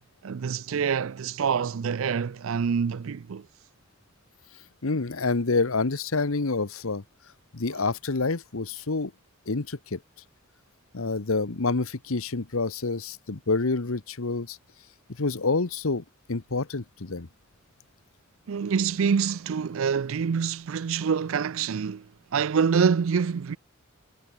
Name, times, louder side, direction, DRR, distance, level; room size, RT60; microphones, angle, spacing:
voice 1, 0.2-3.4 18.5-22.1 22.3-23.6, right 6 dB, 65° right, 0.4 m, -26 dB
voice 2, 4.8-7.0 7.5-9.1 9.5-10.0 10.9-14.6 15.2-17.3, left 3 dB, 70° left, 1.1 m, -27 dB
head